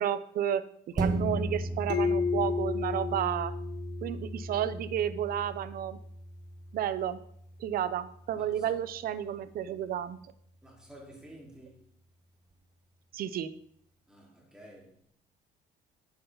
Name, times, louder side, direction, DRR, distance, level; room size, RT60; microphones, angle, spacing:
voice 1, 0.0-3.5 4.0-6.0 6.7-7.2 7.6-10.2 13.1-13.5, right 10 dB, 60° right, 0.8 m, -32 dB
sound 1, 1.0-9.8 10.2-10.3, right 1 dB, 25° right, 1.4 m, -37 dB
sound 2, 1.9-4.5, left 6 dB, 85° left, 1.5 m, -32 dB
voice 2, 8.3-8.8 10.6-11.9 14.1-15.1, right 1 dB, 5° right, 4.0 m, -51 dB
11.5 x 8.3 x 4.0 m
cardioid pair, 110°, 17 cm